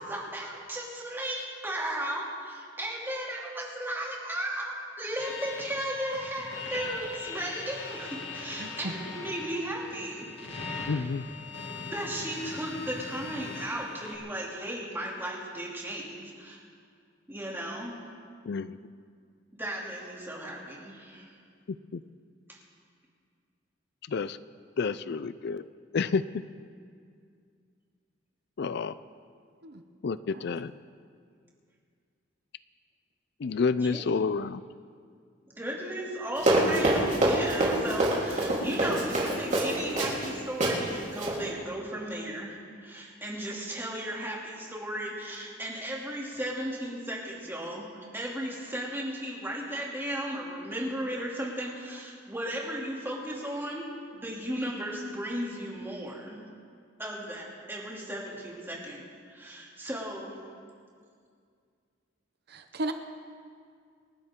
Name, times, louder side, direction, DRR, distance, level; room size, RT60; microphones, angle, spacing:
voice 1, 0.0-10.3 11.9-16.6 17.3-18.0 19.5-21.3 22.5-22.6 33.7-34.2 35.5-56.4 57.0-60.4, right 1 dB, 10° right, -4 dB, 2.8 m, -35 dB
sound 1, 5.2-14.2, left 4 dB, 75° left, 2.4 m, -40 dB
voice 2, 8.6-8.9 29.6-29.8 30.3-30.4 62.5-62.9, right 2 dB, 55° right, 7 dB, 0.9 m, -35 dB
voice 3, 10.9-11.3 18.4-18.8 21.9-22.0 24.1-24.4 24.8-25.6 25.9-26.2 28.6-28.9 30.0-30.7 33.4-34.6, left 5 dB, 60° left, 14 dB, 0.4 m, -29 dB
Run, 36.4-40.3 40.6-40.7 41.1-41.3, right 1 dB, 40° right, 3.7 m, -25 dB
29.0 x 12.0 x 3.8 m, 2.2 s
head